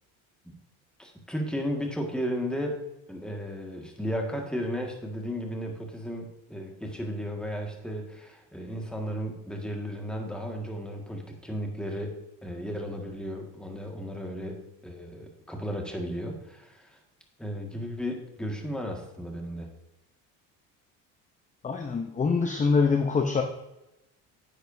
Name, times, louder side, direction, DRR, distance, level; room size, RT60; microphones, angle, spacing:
voice 1, 1.0-2.8 3.1-12.1 12.4-17.0 17.4-19.7, equal, ahead, 1 dB, 1.8 m, -34 dB
voice 2, 21.6-23.4, left 4 dB, 20° left, 4 dB, 0.7 m, -24 dB
10.5 x 7.9 x 2.7 m, 0.94 s
cardioid pair, 120°, 38 cm